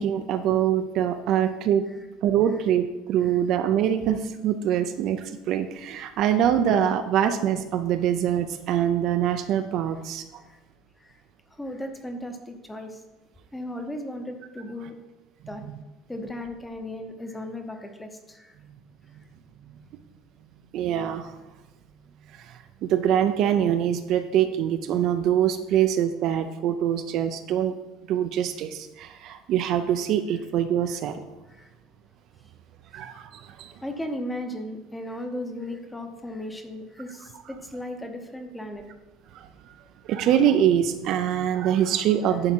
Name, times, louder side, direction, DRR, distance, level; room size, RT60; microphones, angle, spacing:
voice 1, 0.0-1.9 2.2-10.3 20.7-21.4 22.3-27.7 28.1-31.2 32.9-33.7 39.3-39.8 40.0-42.5, right 10 dB, 45° right, 8 dB, 0.5 m, -24 dB
voice 2, 11.5-13.0 13.5-15.0 15.5-15.6 16.1-18.6 30.9-31.0 31.5-31.7 32.9-33.0 33.8-38.8, left 1 dB, 5° left, 5 dB, 0.8 m, -36 dB
11.0 x 4.9 x 4.5 m, 1.1 s
cardioid pair, 165°, 0 cm